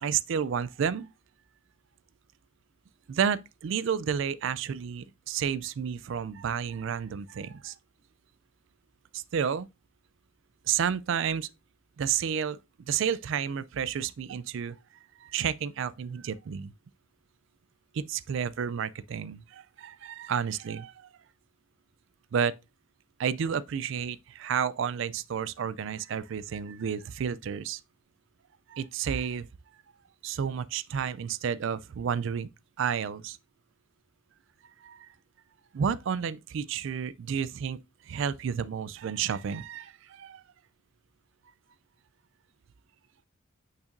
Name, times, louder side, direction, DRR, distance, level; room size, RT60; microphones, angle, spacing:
voice 1, 0.0-1.1 3.1-7.7 9.1-9.7 10.7-11.5 12.0-12.6 12.9-14.8 15.2-16.7 17.9-21.1 22.3-22.5 23.2-27.8 28.7-29.5 30.2-32.5 32.8-33.4 34.8-35.1 35.7-40.4, right 7 dB, 60° right, 0.3 m, -31 dB
6.6 x 5.7 x 2.5 m
head